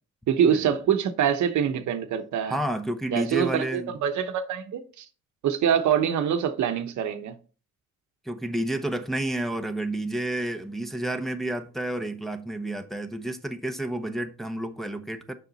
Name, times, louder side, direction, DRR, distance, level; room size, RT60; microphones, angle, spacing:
voice 1, 0.3-2.6 3.1-5.0 5.4-7.3, right 8 dB, 70° right, 1.0 m, -25 dB
voice 2, 2.4-4.0 8.2-15.3, right 1 dB, ahead, 0.7 m, -30 dB
7.0 x 5.3 x 4.0 m
cardioid pair, 90°, 30 cm